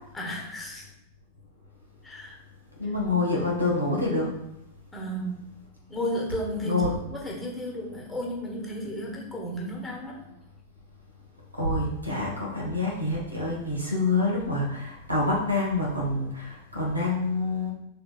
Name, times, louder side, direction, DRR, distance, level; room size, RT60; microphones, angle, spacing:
voice 1, 0.1-0.8 2.0-2.4 3.1-3.2 4.9-5.4 5.9-6.8 7.1-10.3, equal, 10° left, -2 dB, 1.3 m, -33 dB
voice 2, 2.8-4.3 6.0-6.1 6.6-7.0 11.5-17.7, left 2 dB, 85° right, -3 dB, 1.4 m, -27 dB
6.3 x 3.4 x 2.4 m, 0.81 s
figure-of-eight pair, 90°, 0 cm